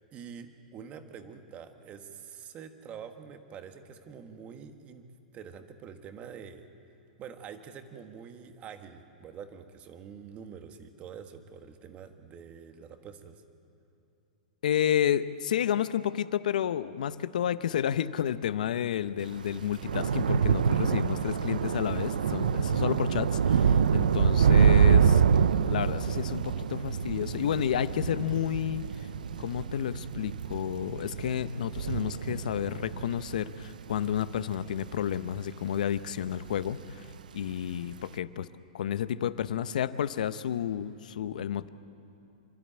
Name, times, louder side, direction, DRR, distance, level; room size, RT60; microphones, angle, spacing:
voice 1, 0.1-5.0 5.3-6.6 7.2-13.4, right 7 dB, 30° right, 7 dB, 1.5 m, -46 dB
voice 2, 14.6-25.2 25.7-28.8 29.4-37.0 37.3-38.5 38.7-41.7, left 10 dB, 75° left, 14 dB, 0.7 m, -31 dB
Thunder / Rain, 19.3-35.9 36.2-36.7 36.9-37.1, right 7 dB, 90° right, 0.5 m, -26 dB
27.5 x 12.0 x 8.7 m, 2.8 s
hypercardioid pair, 130°, 4 cm